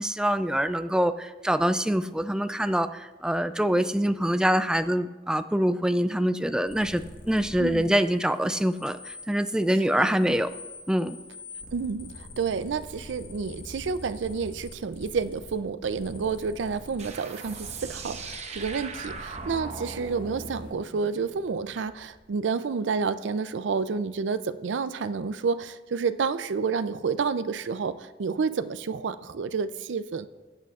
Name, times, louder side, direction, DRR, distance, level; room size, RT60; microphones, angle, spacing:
voice 1, 0.0-10.5 10.9-11.2, equal, 5° right, 11 dB, 0.3 m, -25 dB
sound 1, 6.7-7.9 8.2-15.5 15.8-17.1 17.4-20.7, left 1 dB, 50° left, 1.5 m, -44 dB
voice 2, 7.6-7.9 10.0-10.1 11.7-30.3, right 5 dB, 85° right, 12 dB, 0.4 m, -30 dB
sound 2, 17.0-22.3, right 4 dB, 40° right, 0.8 m, -41 dB
21.0 x 8.3 x 2.4 m, 1.2 s
head